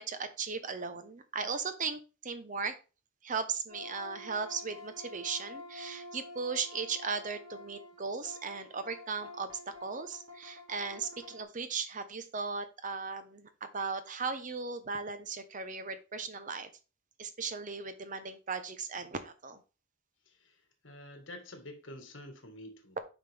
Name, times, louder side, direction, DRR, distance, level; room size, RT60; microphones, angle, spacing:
voice 1, 0.0-2.8 3.2-16.7 17.2-19.6, right 5 dB, 40° right, 0.9 m, -37 dB
sound 1, 3.7-11.4, left 2 dB, 75° right, 2.4 m, -49 dB
voice 2, 20.3-23.0, left 1 dB, 70° left, 1.7 m, -48 dB
9.0 x 5.2 x 3.5 m
head